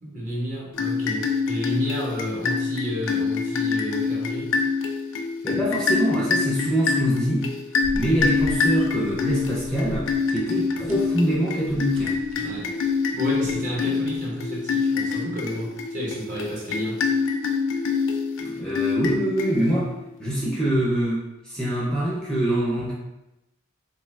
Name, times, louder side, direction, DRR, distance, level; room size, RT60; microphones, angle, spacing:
voice 1, 0.0-4.5 12.3-12.7 13.1-17.0, equal, 40° right, -4 dB, 0.9 m, -31 dB
sound 1, 0.7-19.9, left 5 dB, 70° left, 0.4 m, -26 dB
voice 2, 5.4-7.5 7.9-12.2 18.4-19.9 20.2-22.9, right 1 dB, 5° left, -7 dB, 0.5 m, -24 dB
sound 2, 7.8-14.2, equal, 80° right, 0.4 m, -40 dB
2.9 x 2.2 x 3.2 m, 0.93 s
head